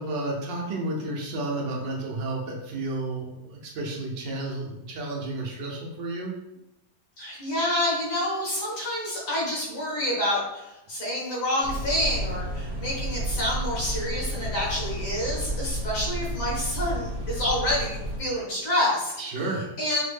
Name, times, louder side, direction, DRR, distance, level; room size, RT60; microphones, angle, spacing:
voice 1, 0.0-6.3 19.2-19.6, right 2 dB, 80° right, -1 dB, 1.5 m, -31 dB
voice 2, 7.2-19.4 19.8-20.0, left 1 dB, 70° left, -6 dB, 2.2 m, -28 dB
sound 1, 11.6-18.2, right 1 dB, 65° right, 1.0 m, -31 dB
5.7 x 2.1 x 3.4 m, 0.91 s
omnidirectional pair, 1.9 m